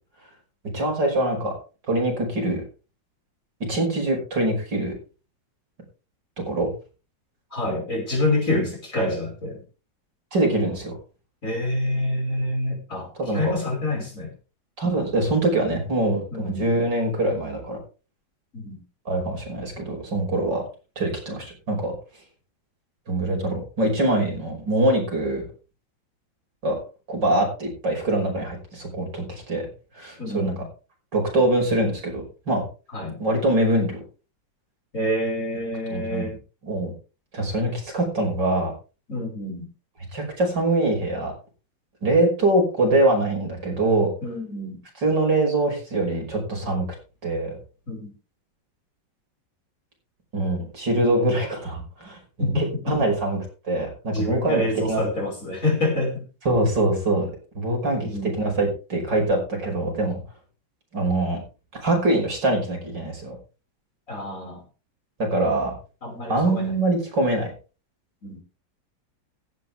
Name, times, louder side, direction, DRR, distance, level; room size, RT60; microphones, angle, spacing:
voice 1, 0.7-1.5 1.9-2.6 3.7-4.9 6.4-6.7 10.3-11.0 13.2-13.5 14.8-17.8 19.1-20.6 21.0-21.9 23.1-25.5 26.6-26.8 27.1-29.7 29.9-30.5 31.1-32.6 33.2-34.0 35.9-36.3 36.6-36.9 37.3-38.7 40.1-41.3 42.0-44.1 45.0-46.9 47.2-47.6 50.3-53.4 53.7-55.0 56.4-57.3 57.5-58.1 58.4-60.2 60.9-61.4 61.8-63.4 65.3-65.8 66.3-67.5, right 2 dB, 70° right, 2 dB, 6.3 m, -23 dB
voice 2, 7.5-9.6 11.4-14.3 16.3-16.7 18.5-18.8 30.2-30.7 32.9-33.2 34.9-36.4 39.1-39.6 44.2-44.8 47.9-48.1 52.4-53.0 54.1-56.2 58.0-58.4 64.1-64.6 66.0-66.6 68.2-68.4, left 1 dB, 45° left, 0 dB, 6.1 m, -27 dB
16.0 x 11.5 x 3.5 m, 0.34 s
omnidirectional pair, 2.0 m